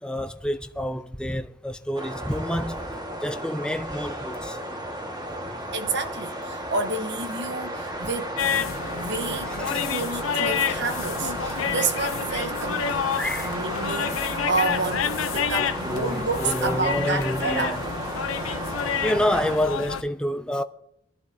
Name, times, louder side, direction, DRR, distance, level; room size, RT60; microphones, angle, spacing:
voice 1, 0.0-2.8 3.2-4.6 8.6-9.1 9.6-9.8 13.2-13.6 15.5-17.8 19.0-20.6, left 1 dB, 5° left, 0.5 m, -28 dB
sound 1, 2.0-19.6, right 1 dB, 20° right, 1.5 m, -33 dB
voice 2, 5.7-8.4 8.9-17.8, right 3 dB, 60° right, 1.2 m, -30 dB
sound 2, 8.4-20.0, left 7 dB, 70° left, 0.6 m, -29 dB
23.0 x 11.5 x 2.7 m
head